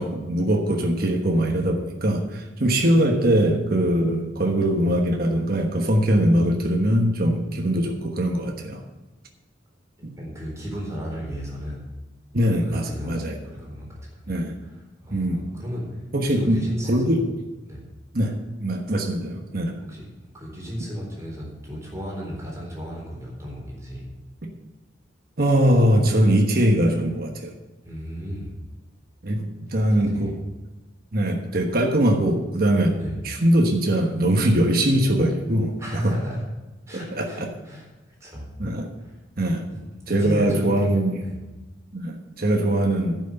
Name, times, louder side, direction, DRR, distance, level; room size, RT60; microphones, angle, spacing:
voice 1, 0.0-8.8 10.0-10.2 12.3-13.4 14.3-14.5 15.1-15.5 16.1-16.6 16.9-17.2 18.1-19.8 24.4-24.5 25.4-27.5 29.2-30.4 31.1-33.0 33.2-35.8 37.1-37.5 38.6-38.9 39.4-39.7 40.1-41.2 41.9-43.2, right 1 dB, 55° right, 2 dB, 1.2 m, -22 dB
voice 2, 10.2-11.8 12.6-14.7 15.0-17.2 17.7-17.8 19.8-20.1 20.3-24.1 27.8-28.6 30.0-30.4 33.0-33.2 35.8-36.4 36.9-38.5 39.0-39.2 39.7-41.4, equal, 15° right, -3 dB, 4.0 m, -34 dB
10.5 x 6.3 x 8.0 m, 1.1 s
head